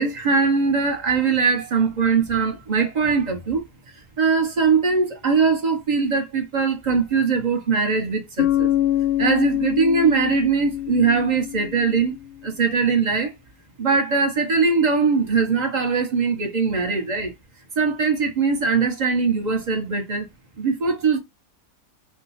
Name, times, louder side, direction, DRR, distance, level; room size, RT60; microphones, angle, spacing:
voice 1, 0.0-3.7 4.2-8.7 9.2-12.2 12.4-13.3 13.8-17.3 17.8-20.3 20.6-21.2, right 5 dB, 35° right, 0.9 m, -21 dB
Bass guitar, 8.4-12.2, left 12 dB, 75° left, 1.0 m, -24 dB
4.7 x 2.1 x 4.1 m
omnidirectional pair, 1.6 m